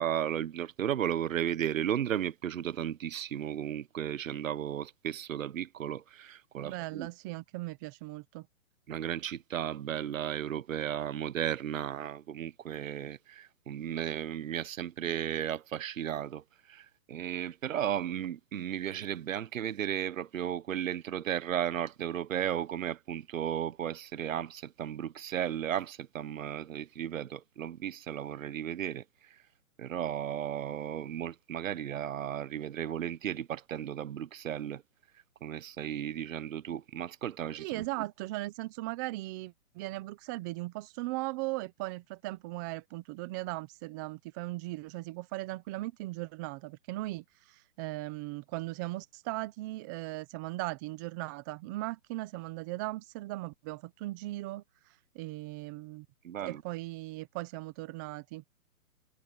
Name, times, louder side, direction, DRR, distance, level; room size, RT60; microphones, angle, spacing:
voice 1, 0.0-7.1 8.9-16.4 16.7-29.0 29.8-34.8 35.4-37.8 56.2-56.6, right 10 dB, 65° right, 1.1 m, -34 dB
voice 2, 6.6-8.5 37.6-54.6 55.1-56.1 56.4-58.4, right 20 dB, 15° right, 0.7 m, -38 dB
hypercardioid pair, 155°, 43 cm